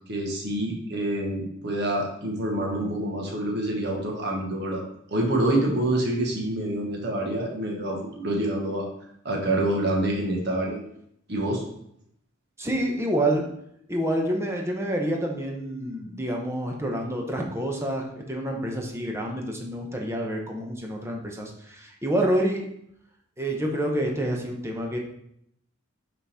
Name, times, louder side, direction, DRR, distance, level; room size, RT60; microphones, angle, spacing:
voice 1, 0.1-4.8 5.1-8.9 9.2-10.8 11.3-11.6, right 1 dB, 55° right, 0 dB, 1.3 m, -27 dB
voice 2, 12.6-13.5 13.9-22.7 23.4-25.0, right 1 dB, 15° right, 1 dB, 0.9 m, -28 dB
5.8 x 4.0 x 4.2 m, 0.73 s
head